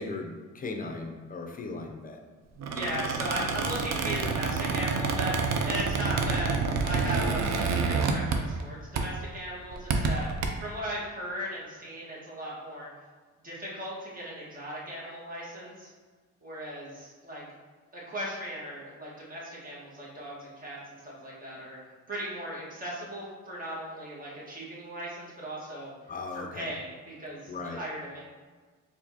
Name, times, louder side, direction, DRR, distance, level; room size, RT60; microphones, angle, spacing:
voice 1, 0.0-2.2 26.1-26.7 27.5-27.8, left 3 dB, 30° left, 2 dB, 0.5 m, -37 dB
Squeak, 2.6-8.7 9.0-9.2 9.7-10.5, right 4 dB, 60° right, 0.5 m, -28 dB
voice 2, 2.7-5.4 5.6-6.6 6.8-12.9 13.4-15.9 16.4-17.4 17.9-21.8 22.1-25.9 26.3-28.2, equal, 30° right, -6 dB, 1.5 m, -37 dB
4.3 x 2.7 x 2.8 m, 1.4 s
cardioid pair, 90°, 30 cm